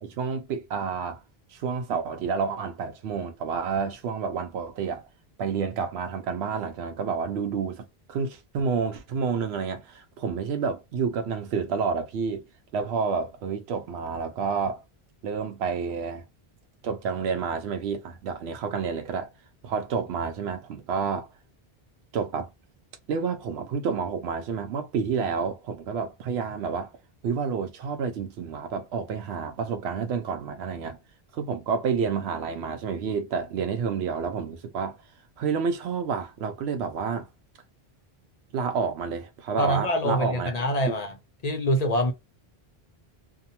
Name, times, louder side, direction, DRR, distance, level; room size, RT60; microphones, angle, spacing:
voice 1, 0.0-1.2 1.5-5.1 5.4-12.4 12.7-14.8 15.2-16.2 16.8-19.3 19.6-21.3 22.1-22.5 23.1-26.9 27.2-31.0 31.3-35.0 35.4-37.3 38.5-41.0, right 5 dB, 90° right, 0.8 m, -29 dB
voice 2, 39.6-41.1 41.4-42.1, equal, 45° left, 0.6 m, -25 dB
2.7 x 2.1 x 2.8 m
omnidirectional pair, 1.0 m